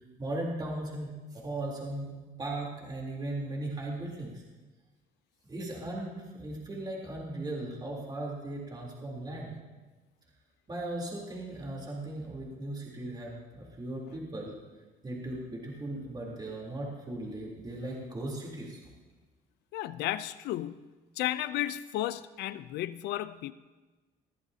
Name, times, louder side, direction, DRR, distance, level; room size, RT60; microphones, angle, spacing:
voice 1, 0.2-2.1 2.4-4.4 5.5-9.6 10.7-14.6 15.0-18.8, right 1 dB, 25° right, -3 dB, 3.6 m, -37 dB
voice 2, 19.7-20.8 21.2-23.5, left 14 dB, 80° left, 15 dB, 0.6 m, -33 dB
21.5 x 14.0 x 2.9 m, 1.2 s
cardioid pair, 110°, 17 cm